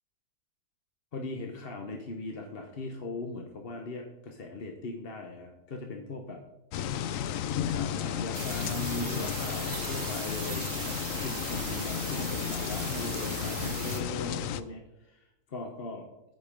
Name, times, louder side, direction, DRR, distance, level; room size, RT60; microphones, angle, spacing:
voice 1, 1.1-6.4 7.7-16.1, left 2 dB, 45° left, 3 dB, 1.0 m, -39 dB
sound 1, 6.7-14.6, left 9 dB, 70° left, 0.9 m, -33 dB
sound 2, 8.3-14.0, right 7 dB, 75° right, 1.5 m, -39 dB
13.5 x 5.3 x 5.1 m, 0.93 s
omnidirectional pair, 1.7 m